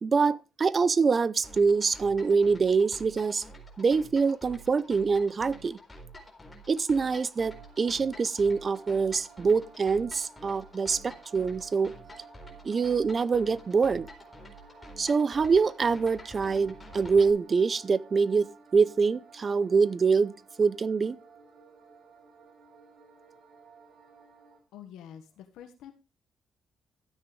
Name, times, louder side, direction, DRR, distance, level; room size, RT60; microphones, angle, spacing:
voice 1, 0.0-3.4 3.8-5.8 6.7-11.9 12.6-14.1 15.0-18.5 18.7-20.3 20.6-21.2, right 5 dB, 40° right, 0.7 m, -25 dB
sound 1, 1.4-17.3, equal, 20° left, 4.2 m, -49 dB
sound 2, 7.4-24.6, right 5 dB, 60° right, 5.3 m, -54 dB
voice 2, 24.7-25.9, left 9 dB, 85° left, 1.4 m, -47 dB
13.0 x 9.6 x 3.3 m
cardioid pair, 90°, 0 cm